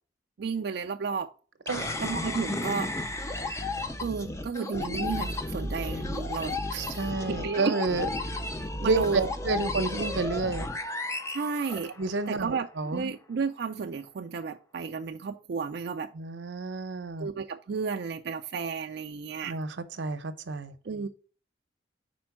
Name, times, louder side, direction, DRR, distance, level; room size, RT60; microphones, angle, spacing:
voice 1, 0.4-1.3 2.0-2.9 4.0-7.8 8.8-9.3 11.3-11.9 12.3-16.1 17.2-19.6 20.8-21.1, right 5 dB, 60° right, 0.4 m, -32 dB
sound 1, 1.7-12.3, left 2 dB, 15° left, 0.4 m, -33 dB
voice 2, 1.7-2.0 6.7-8.4 8.8-10.7 12.0-13.1 16.1-17.3 19.5-20.8, right 3 dB, 85° right, 0.7 m, -30 dB
5.1 x 4.3 x 5.8 m
head